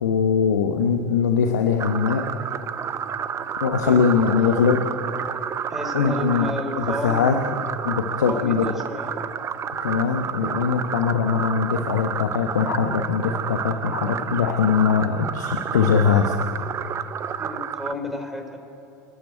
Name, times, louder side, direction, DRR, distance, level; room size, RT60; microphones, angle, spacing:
voice 1, 0.0-2.3 3.6-4.8 5.9-6.5 6.8-7.4 7.8-8.7 9.8-16.3, left 6 dB, 80° left, 4 dB, 1.2 m, -21 dB
sound 1, 1.8-17.9, right 7 dB, 30° right, 0.8 m, -30 dB
voice 2, 5.7-7.3 8.2-9.2 17.4-18.6, left 1 dB, 5° right, 5 dB, 4.0 m, -32 dB
29.5 x 10.5 x 9.2 m, 2.7 s
hypercardioid pair, 85°, 9 cm